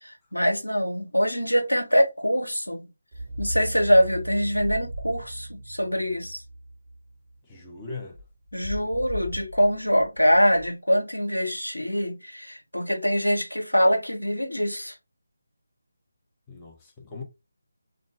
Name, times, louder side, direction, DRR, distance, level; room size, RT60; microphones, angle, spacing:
voice 1, 0.0-2.9 3.4-6.4 8.5-14.9, equal, 85° left, 1.1 m, -24 dB
sound 1, 3.1-8.0, right 1 dB, 35° right, 0.7 m, -37 dB
sound 2, 3.3-3.9 4.5-5.3 8.1-10.7, equal, 60° left, 1.4 m, -38 dB
voice 2, 7.4-8.2 16.5-17.2, left 4 dB, 15° left, 0.8 m, -39 dB
3.7 x 2.5 x 3.3 m
figure-of-eight pair, 155°, 0 cm